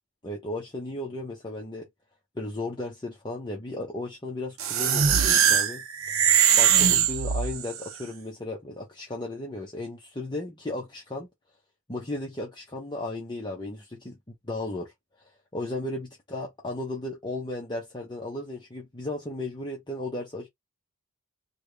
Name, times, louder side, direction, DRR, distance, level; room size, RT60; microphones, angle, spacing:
voice 1, 0.2-1.9 2.3-5.8 6.6-11.3 11.9-14.2 14.4-14.9 15.2-20.5, left 2 dB, 20° left, 0.7 m, -35 dB
sound 1, 4.6-7.8, right 8 dB, 60° right, 0.6 m, -21 dB
3.5 x 2.3 x 3.2 m
head